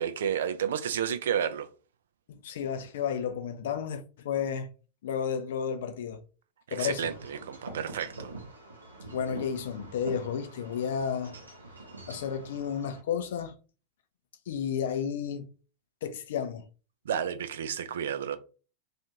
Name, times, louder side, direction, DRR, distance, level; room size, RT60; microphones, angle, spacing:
voice 1, 0.0-1.7 6.7-8.3 17.1-18.4, right 8 dB, 60° right, 0.3 m, -31 dB
voice 2, 2.3-4.7 5.0-6.2 6.7-7.1 9.0-11.4 12.1-13.6 14.5-15.5 16.0-16.6, left 7 dB, 60° left, 0.4 m, -32 dB
Wind chime / Wind, 6.7-13.0, right 2 dB, 80° right, 0.7 m, -45 dB
2.5 x 2.4 x 2.8 m
figure-of-eight pair, 90°, 0 cm